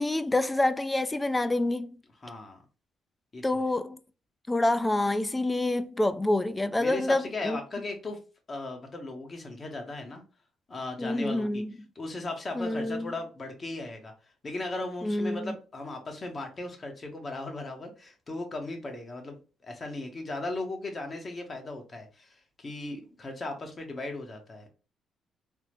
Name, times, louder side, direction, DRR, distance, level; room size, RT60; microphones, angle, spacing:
voice 1, 0.0-2.0 3.4-4.0 4.5-7.6 11.0-11.7 12.6-13.1 15.0-15.6, left 2 dB, 15° left, 0.3 m, -27 dB
voice 2, 2.2-2.6 3.3-3.6 6.8-8.2 8.5-10.2 10.7-11.6 12.0-14.1 14.4-24.7, left 2 dB, 35° left, 0.8 m, -37 dB
3.3 x 2.0 x 2.9 m
cardioid pair, 90°, 0 cm